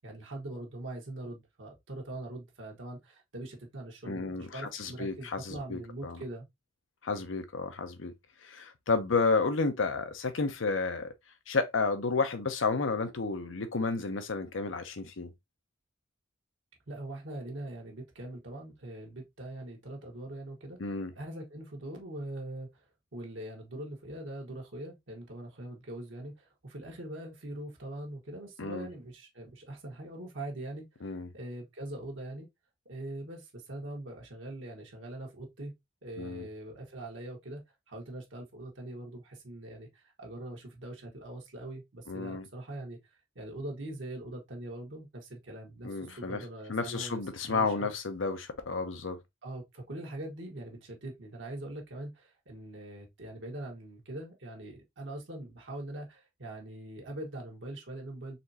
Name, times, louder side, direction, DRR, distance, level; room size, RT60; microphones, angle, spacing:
voice 1, 0.0-6.5 16.9-20.8 21.1-22.9 23.1-32.5 32.8-35.7 36.0-37.6 37.9-43.0 43.3-47.2 47.5-47.9 49.4-58.4, right 1 dB, 70° right, 1.4 m, -42 dB
voice 2, 4.1-6.2 7.0-8.1 8.4-11.1 11.5-15.3 20.8-21.1 28.6-28.9 31.0-31.3 36.2-36.5 42.1-42.4 45.8-46.4 46.7-49.2, left 4 dB, 85° left, 0.8 m, -31 dB
4.2 x 3.1 x 2.7 m
head